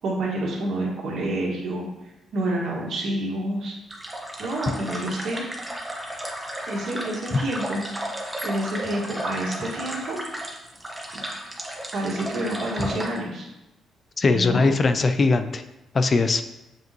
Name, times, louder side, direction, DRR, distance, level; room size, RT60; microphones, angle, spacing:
voice 1, 0.0-1.8 2.3-3.7 4.4-5.4 6.7-7.8 8.4-10.2 11.9-13.5 14.3-14.7, right 1 dB, 70° right, -2 dB, 2.0 m, -28 dB
sound 1, 3.9-13.2, right 1 dB, 15° right, 1.3 m, -34 dB
voice 2, 14.2-15.6 15.9-16.4, left 3 dB, 40° left, 10 dB, 0.5 m, -20 dB
7.4 x 5.2 x 3.1 m, 0.95 s
cardioid pair, 90°, 0 cm